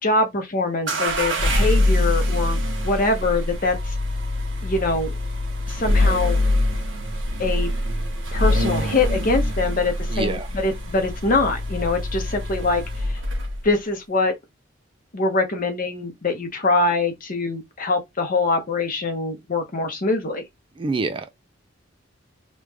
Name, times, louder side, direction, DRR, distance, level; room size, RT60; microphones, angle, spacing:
voice 1, 0.0-4.0 4.6-5.2 5.7-6.4 7.4-7.7 8.3-13.2 13.6-14.3 15.1-20.4, left 3 dB, 45° left, 1.0 m, -23 dB
sound 1, 0.9-13.7, left 1 dB, 65° right, 1.0 m, -24 dB
voice 2, 10.1-10.5 20.8-21.3, right 3 dB, 25° right, 0.3 m, -26 dB
3.2 x 2.4 x 3.4 m
head